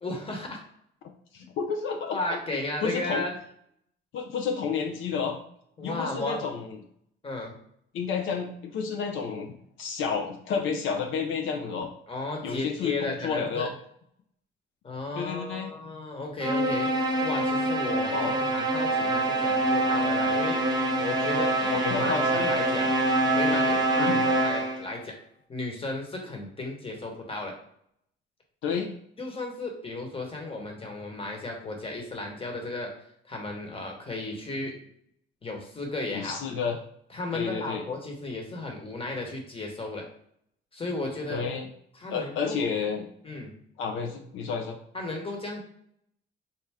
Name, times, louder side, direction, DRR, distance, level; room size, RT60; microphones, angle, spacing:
voice 1, 0.0-0.6 2.1-3.4 5.8-6.4 7.2-7.6 12.1-13.7 14.8-16.9 17.2-20.6 21.0-22.9 23.4-25.1 25.5-27.5 29.2-32.9 33.3-34.7 35.4-36.4 37.1-40.1 40.7-41.5 41.9-42.6 43.2-43.5 44.9-45.6, left 2 dB, 30° left, 2 dB, 1.1 m, -34 dB
voice 2, 1.3-3.2 4.1-5.4 5.8-6.8 7.9-11.9 12.4-13.7 15.1-15.7 18.1-18.4 21.7-22.6 24.0-24.2 28.6-28.9 36.1-36.8 37.3-37.8 41.3-41.6 42.1-43.1 43.8-44.8, left 6 dB, 80° left, 3 dB, 0.5 m, -31 dB
sound 1, 16.4-24.9, right 1 dB, 20° right, 0.7 m, -25 dB
4.3 x 2.1 x 3.5 m, 0.68 s
cardioid pair, 90°, 20 cm